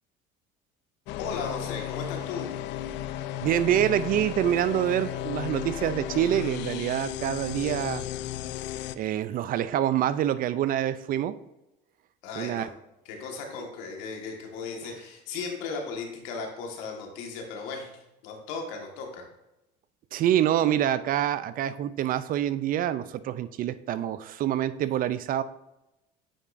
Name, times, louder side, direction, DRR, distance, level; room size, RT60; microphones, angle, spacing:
sound 1, 1.1-9.0, left 12 dB, 60° left, 0.4 m, -34 dB
voice 1, 1.2-2.5 12.2-12.7 13.0-17.9 18.2-19.2, left 4 dB, 75° left, 1 dB, 1.5 m, -36 dB
voice 2, 3.4-8.0 9.0-11.3 12.4-12.7 20.1-25.4, right 11 dB, 45° right, 14 dB, 0.4 m, -26 dB
8.7 x 4.6 x 2.5 m, 0.92 s
supercardioid pair, 100°, 21 cm